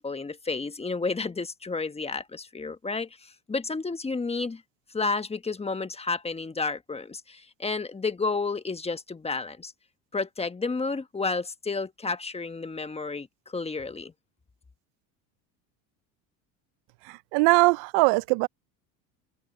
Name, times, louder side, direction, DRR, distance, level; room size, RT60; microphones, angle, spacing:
voice 1, 0.0-4.6 4.9-9.7 10.1-14.1, left 4 dB, 15° left, 1.2 m, -31 dB
voice 2, 17.3-18.5, right 28 dB, 70° right, 0.6 m, -20 dB
supercardioid pair, 95°, 40 cm